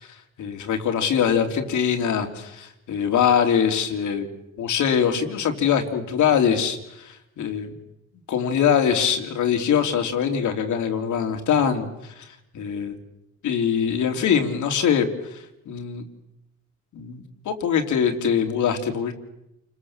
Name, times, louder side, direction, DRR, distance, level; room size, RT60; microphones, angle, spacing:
voice 1, 0.4-4.3 4.6-7.7 8.3-11.9 12.2-12.3 12.5-13.0 13.4-16.0 16.9-19.1, left 7 dB, 75° left, 5 dB, 3.2 m, -23 dB
29.0 x 22.0 x 7.4 m, 0.87 s
cardioid pair, 90°, 30 cm